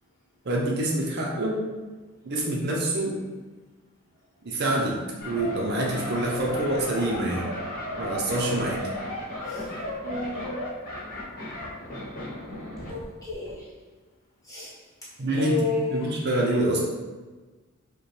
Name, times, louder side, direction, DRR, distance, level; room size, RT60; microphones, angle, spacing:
voice 1, 0.4-1.6 2.2-3.2 4.4-5.0 5.2-7.5 8.0-8.9 15.2-15.5 15.9-16.8, right 1 dB, 50° right, -2 dB, 0.6 m, -26 dB
sound 1, 5.2-13.0 13.3-13.5, left 1 dB, 40° left, 1.0 m, -34 dB
voice 2, 10.0-10.5 12.8-13.7 14.4-14.7 15.0-16.2, left 3 dB, 15° left, -9 dB, 1.3 m, -32 dB
5.2 x 2.2 x 3.2 m, 1.3 s
head